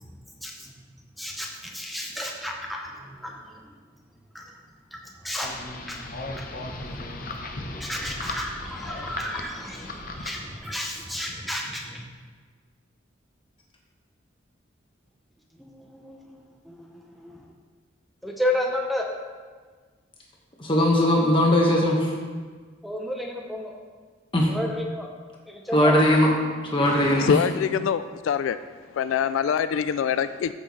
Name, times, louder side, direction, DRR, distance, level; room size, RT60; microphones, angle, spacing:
voice 1, 0.4-0.7 1.2-3.7 4.3-4.5 4.9-5.6 5.9-7.4 7.7-12.1 15.6-17.4 18.2-19.1 22.8-23.7 24.5-25.1 25.5-26.0, left 1 dB, ahead, 0 dB, 0.7 m, -33 dB
sound 1, 5.4-10.6, left 2 dB, 45° left, 0.8 m, -36 dB
voice 2, 20.6-22.1 24.3-24.5 25.7-26.3 26.6-27.4, left 1 dB, 25° left, -1 dB, 1.5 m, -19 dB
voice 3, 26.7-28.6 28.9-30.5, left 7 dB, 85° left, 12 dB, 0.3 m, -25 dB
14.0 x 6.0 x 3.2 m, 1.5 s
head